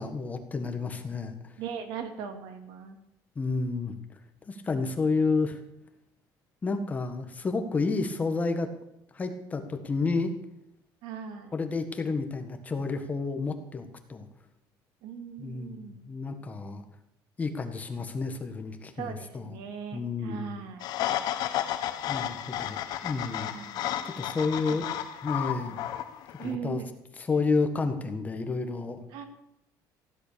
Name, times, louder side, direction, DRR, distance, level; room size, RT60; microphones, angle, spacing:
voice 1, 0.0-1.5 3.4-3.9 4.5-5.6 6.6-8.7 9.1-10.3 11.5-14.3 15.4-16.8 17.4-19.6 19.9-20.5 22.1-22.8 23.0-23.5 24.0-24.8 25.2-25.8 26.4-26.8 27.3-29.0, left 4 dB, 20° left, 6 dB, 1.7 m, -30 dB
voice 2, 1.6-3.0 11.0-11.5 15.0-16.0 18.9-20.9 21.6-21.8 23.5-23.9 24.5-25.2 26.4-26.9 29.1-29.2, right 7 dB, 80° right, 6 dB, 2.8 m, -40 dB
sound 1, 20.8-26.5, left 11 dB, 60° left, 1.4 m, -32 dB
16.0 x 11.0 x 6.9 m, 0.79 s
cardioid pair, 160°, 8 cm